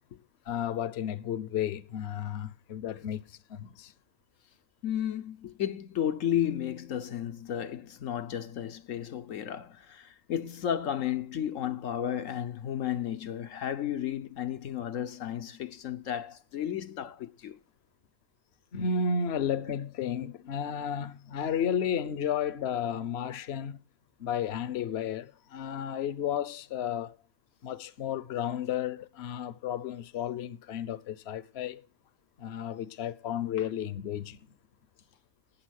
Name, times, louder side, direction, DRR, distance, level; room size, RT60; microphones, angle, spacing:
voice 1, 0.5-3.9 18.7-23.8 24.2-27.2 27.6-31.8 32.4-34.4, left 7 dB, 55° left, 1.1 m, -33 dB
voice 2, 4.8-17.6 33.6-33.7, left 10 dB, 75° left, 1.2 m, -33 dB
18.0 x 7.2 x 6.4 m
omnidirectional pair, 1.4 m